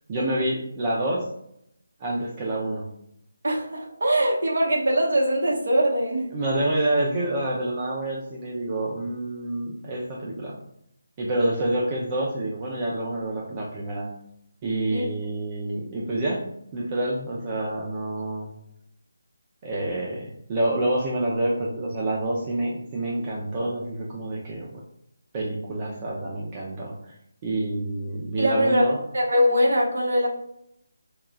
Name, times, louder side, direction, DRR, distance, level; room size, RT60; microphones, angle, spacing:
voice 1, 0.1-1.2 2.0-2.8 6.3-10.6 11.2-14.1 14.6-16.4 16.7-18.5 19.6-24.8 25.3-26.9 27.4-29.0, right 1 dB, 25° right, -4 dB, 0.6 m, -27 dB
voice 2, 3.4-6.3 14.9-15.0 28.4-30.3, equal, 60° right, -2 dB, 1.1 m, -22 dB
4.7 x 2.3 x 2.3 m, 0.74 s
figure-of-eight pair, 155°, 0 cm